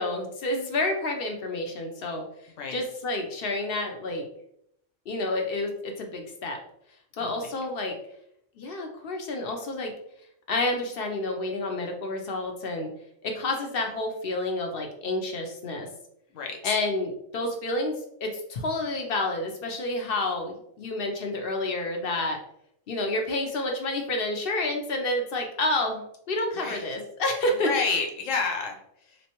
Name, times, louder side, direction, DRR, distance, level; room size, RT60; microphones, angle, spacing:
voice 1, 0.0-2.2 2.7-4.2 5.1-6.6 7.2-7.9 8.6-9.9 10.5-12.9 13.2-15.9 16.6-22.4 22.9-27.7, left 2 dB, 55° left, 3 dB, 0.7 m, -29 dB
voice 2, 16.3-16.8 26.5-26.9 27.5-29.2, left 4 dB, 75° left, 2 dB, 1.1 m, -30 dB
3.2 x 3.0 x 2.9 m, 0.74 s
omnidirectional pair, 1.3 m